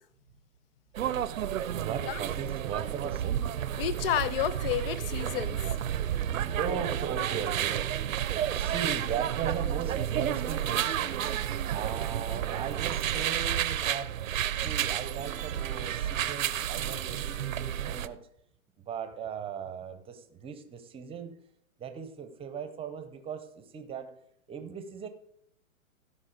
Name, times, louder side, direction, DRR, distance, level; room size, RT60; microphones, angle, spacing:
sound 1, 0.9-18.1, right 10 dB, 70° right, 0.7 m, -31 dB
voice 1, 1.7-3.5 6.6-8.0 8.5-14.2 14.6-18.2 18.9-21.4 21.8-24.2 24.5-25.1, right 7 dB, 15° right, 0.8 m, -38 dB
voice 2, 3.8-5.8, left 11 dB, 45° left, 0.5 m, -31 dB
15.5 x 5.5 x 5.1 m
hypercardioid pair, 120°, 42 cm